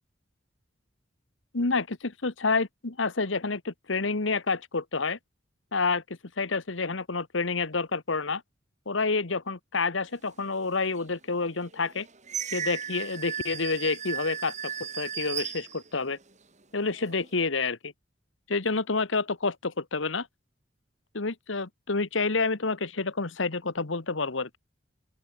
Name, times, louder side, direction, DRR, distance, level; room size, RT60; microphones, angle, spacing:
voice 1, 1.5-5.2 5.7-6.0 6.4-8.4 8.9-12.1 12.5-16.2 16.7-17.9 18.5-20.3 21.1-24.6, left 4 dB, 85° left, 1.5 m, -29 dB
sound 1, 10.9-11.0 11.6-16.3 16.8-17.5, right 8 dB, 40° right, 4.7 m, -36 dB
open air
head